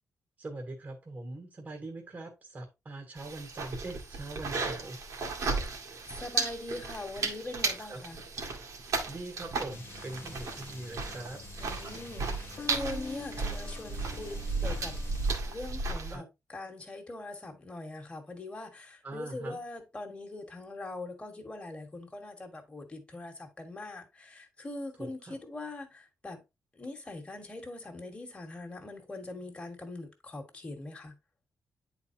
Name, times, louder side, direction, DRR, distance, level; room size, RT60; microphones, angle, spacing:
voice 1, 0.4-5.2 7.9-8.0 9.1-11.4 16.1-16.3 19.0-19.6 25.0-25.4, right 2 dB, 30° right, 1.2 m, -42 dB
sound 1, 3.2-16.2, right 3 dB, 70° right, 1.8 m, -35 dB
voice 2, 6.0-8.2 11.6-15.0 15.4-26.4 26.7-31.2, left 2 dB, 20° left, 1.5 m, -42 dB
sound 2, 9.7-15.3, left 5 dB, 40° left, 0.8 m, -46 dB
9.6 x 4.2 x 2.8 m
wide cardioid pair, 145°, 6 cm